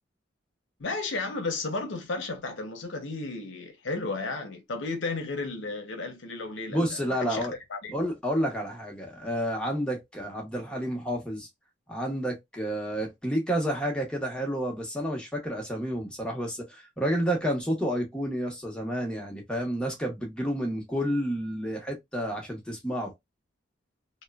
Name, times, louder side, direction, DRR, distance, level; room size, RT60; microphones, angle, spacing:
voice 1, 0.8-8.0, left 3 dB, 75° left, 0.7 m, -33 dB
voice 2, 6.7-7.5 7.9-11.5 11.9-23.1, equal, 5° left, 0.8 m, -30 dB
3.0 x 2.1 x 2.2 m
head